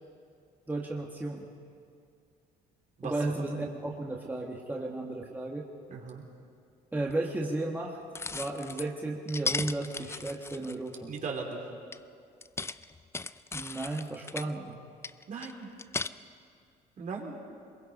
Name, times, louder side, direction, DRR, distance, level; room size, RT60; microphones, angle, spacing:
voice 1, 0.7-1.5 3.0-5.6 6.9-8.0 8.3-11.1 13.5-14.8, right 2 dB, 10° right, -2 dB, 1.7 m, -34 dB
voice 2, 3.0-3.4 5.9-6.2 11.1-11.6 15.3-15.7 17.0-17.4, right 4 dB, 50° right, 0 dB, 3.3 m, -38 dB
sound 1, 7.1-7.2 8.1-8.9 9.3-11.2 11.9-12.0 12.4-14.5 15.0-16.1, left 3 dB, 15° left, 0.4 m, -36 dB
23.0 x 22.0 x 5.4 m, 2.4 s
cardioid pair, 110°, 17 cm